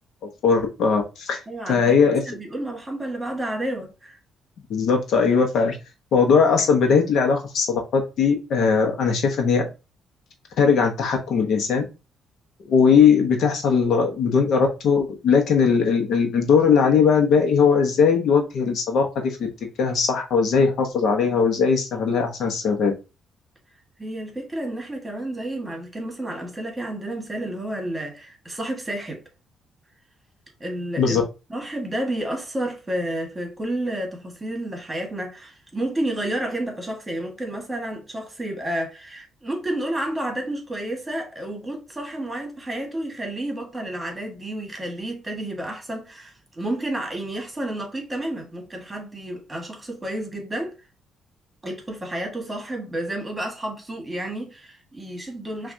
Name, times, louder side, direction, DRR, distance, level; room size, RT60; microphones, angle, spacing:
voice 1, 0.4-1.4 1.7-2.2 4.7-5.8 6.1-9.7 10.6-11.8 12.6-19.4 19.8-22.9 31.0-31.2, left 6 dB, 70° left, 1.0 m, -19 dB
voice 2, 1.5-4.2 24.0-29.2 30.6-50.8 51.6-55.7, right 1 dB, 15° right, 1.5 m, -31 dB
5.8 x 2.5 x 2.7 m
cardioid pair, 90°, 0 cm